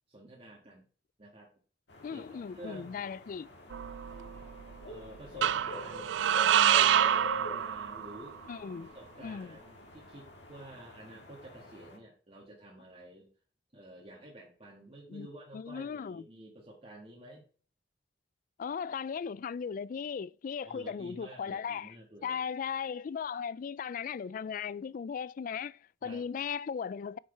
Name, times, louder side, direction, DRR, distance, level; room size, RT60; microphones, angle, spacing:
voice 1, 0.1-0.8 1.2-1.5 2.1-2.3 2.5-3.1 4.9-6.2 7.2-8.4 8.9-13.3 13.7-17.5 20.6-22.4 26.0-26.2, right 1 dB, 35° right, 1.8 m, -50 dB
sound 1, 1.9-12.0, left 2 dB, 70° left, 1.7 m, -47 dB
voice 2, 2.0-3.5 8.5-8.9 9.2-9.6 15.1-15.3 15.5-16.2 18.6-22.0 22.2-27.2, left 6 dB, 50° left, 0.3 m, -37 dB
sound 2, 3.7-4.5 5.4-8.3, right 10 dB, 75° right, 0.3 m, -27 dB
8.0 x 6.4 x 3.4 m
head